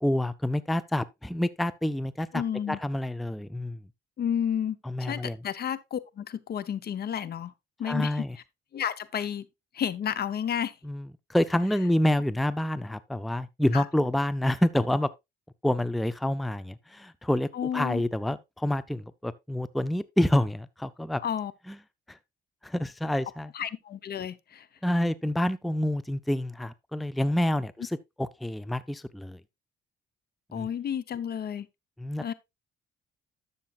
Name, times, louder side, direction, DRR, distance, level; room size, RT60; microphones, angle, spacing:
voice 1, 0.0-2.4 2.7-3.8 4.9-5.4 7.8-8.4 10.8-15.1 15.6-21.2 21.7-21.8 22.1-22.2 22.6-23.5 24.8-27.9 28.2-29.4 30.5-30.7 32.0-32.3, left 1 dB, ahead, 0.5 m, -28 dB
voice 2, 2.3-2.8 4.2-7.5 7.8-8.2 8.7-9.5 9.7-10.8 13.7-13.9 17.5-18.0 21.2-21.5 23.5-24.7 30.5-31.7 32.2-32.3, left 9 dB, 55° left, 0.7 m, -31 dB
11.5 x 6.9 x 2.4 m
cardioid pair, 90°, 20 cm